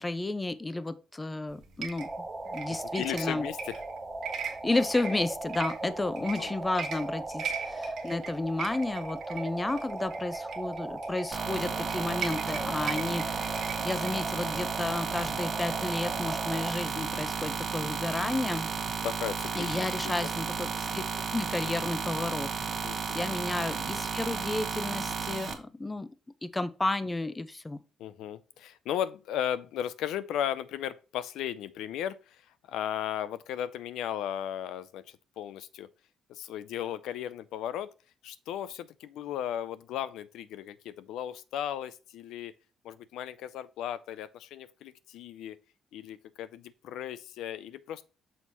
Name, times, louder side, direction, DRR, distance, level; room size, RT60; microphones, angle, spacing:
voice 1, 0.0-2.1 2.5-3.5 4.5-13.6 13.8-18.7 19.5-21.0 21.3-26.1 26.4-27.8, left 2 dB, 20° left, 0.5 m, -32 dB
sound 1, 1.5-15.5, right 7 dB, 70° right, 1.2 m, -41 dB
sound 2, 2.0-16.7, right 2 dB, 20° right, 0.9 m, -38 dB
voice 2, 3.0-3.8 6.4-6.5 19.0-19.8 20.0-20.1 22.8-23.4 28.0-32.4 32.7-35.0 35.4-35.9 36.3-37.9 38.2-42.5 42.8-45.6 45.9-48.0, left 10 dB, 85° left, 0.4 m, -36 dB
sound 3, 11.3-25.5, right 5 dB, 45° right, 1.1 m, -33 dB
6.3 x 2.9 x 5.3 m
cardioid pair, 90°, 0 cm